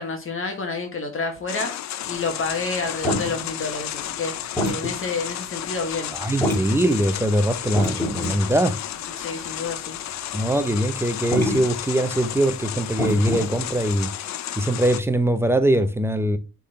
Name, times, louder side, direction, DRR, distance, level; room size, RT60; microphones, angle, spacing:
voice 1, 0.0-1.7 2.0-4.3 4.7-6.1 9.2-10.0, left 4 dB, 45° left, 1.5 m, -29 dB
sound 1, 1.5-15.0, left 12 dB, 65° left, 0.6 m, -33 dB
sound 2, 2.1-5.4 5.7-6.0 6.3-6.9 7.2-8.4 8.7-9.1 9.4-9.5 9.9-10.4 11.1-11.7 12.2-12.4 12.8-14.0, equal, 10° left, 2.3 m, -26 dB
voice 2, 6.1-8.8 10.3-14.1 14.6-16.4, right 1 dB, 10° right, 0.8 m, -22 dB
6.2 x 3.9 x 4.2 m
cardioid pair, 90°, 30 cm